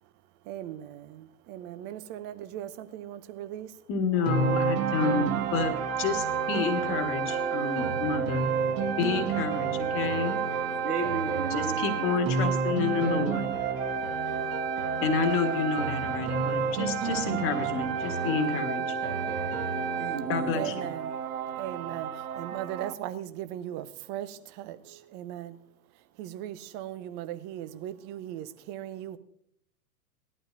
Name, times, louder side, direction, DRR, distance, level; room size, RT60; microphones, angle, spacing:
voice 1, 0.5-1.0 1.5-3.7 20.5-21.1 21.6-22.1 22.4-24.3 24.6-24.8 25.1-25.5 26.2-29.2, right 12 dB, 25° right, 0.6 m, -38 dB
voice 2, 3.9-8.5 9.0-10.4 11.5-13.5 15.0-18.9 20.3-20.9, left 5 dB, 25° left, 1.6 m, -29 dB
sound 1, 4.1-22.9, right 8 dB, 60° right, 1.0 m, -34 dB
sound 2, 4.3-20.3, right 5 dB, 40° right, 1.7 m, -31 dB
voice 3, 10.8-12.3 14.6-15.0 19.4-21.1, right 4 dB, 80° right, 2.4 m, -36 dB
18.5 x 12.0 x 2.6 m
figure-of-eight pair, 105°, 46 cm